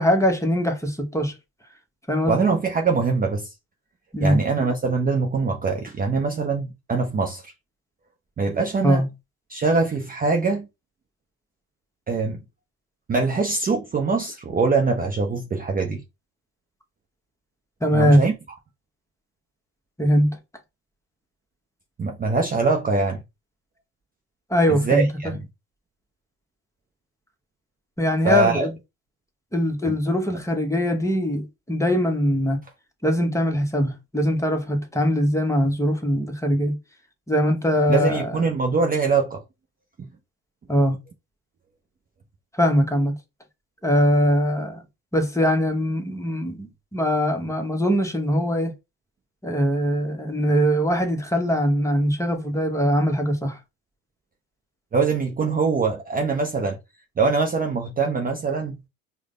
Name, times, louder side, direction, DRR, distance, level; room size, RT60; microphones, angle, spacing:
voice 1, 0.0-1.3 2.1-2.5 4.1-4.4 8.8-9.1 17.8-18.2 20.0-20.4 24.5-25.3 28.0-28.7 29.5-32.6 33.0-36.8 37.3-38.4 40.7-41.0 42.5-43.2 43.8-44.8 45.1-48.7 49.4-53.6, equal, 5° left, 0.9 m, -21 dB
voice 2, 2.3-3.5 4.2-7.4 8.4-9.0 9.5-10.7 12.1-12.4 13.1-16.0 17.9-18.3 22.0-23.2 24.7-25.4 28.2-28.7 29.9-30.0 37.9-39.4 54.9-56.8 57.2-58.7, right 4 dB, 20° right, 0.6 m, -23 dB
4.8 x 2.2 x 2.4 m
hypercardioid pair, 75°, 40 cm